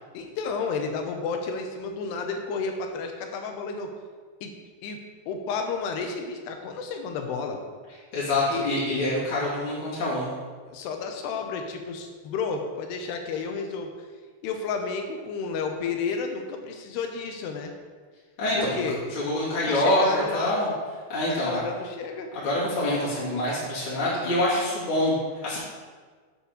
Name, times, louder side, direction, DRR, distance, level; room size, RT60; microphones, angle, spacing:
voice 1, 0.1-3.9 4.4-4.5 4.8-5.0 5.3-7.6 8.5-8.7 10.7-13.9 14.4-17.7 18.5-19.0 19.5-20.6 21.3-22.3, left 5 dB, 75° left, 4 dB, 2.5 m, -31 dB
voice 2, 8.1-10.3 18.4-18.8 19.1-20.0 20.3-20.7 21.1-21.6 22.3-25.1 25.4-25.6, left 1 dB, 35° left, -10 dB, 2.4 m, -25 dB
8.0 x 4.9 x 6.5 m, 1.5 s
omnidirectional pair, 5.3 m